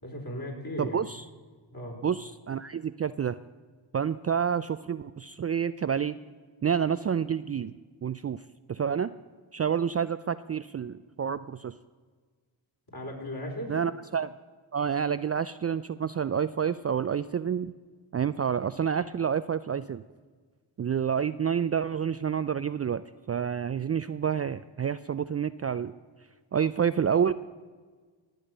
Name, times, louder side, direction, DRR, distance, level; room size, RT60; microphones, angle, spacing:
voice 1, 0.0-1.0 1.7-2.0 12.9-13.7, equal, 45° left, -1 dB, 4.5 m, -36 dB
voice 2, 0.8-1.2 2.0-3.4 3.9-6.2 6.6-7.7 8.0-8.4 8.7-9.1 9.5-11.8 13.7-14.3 14.7-17.7 18.1-20.0 20.8-23.0 23.3-25.9 26.5-27.3, right 7 dB, 30° right, 13 dB, 0.4 m, -28 dB
18.0 x 7.9 x 6.6 m, 1.5 s
supercardioid pair, 45°, 49 cm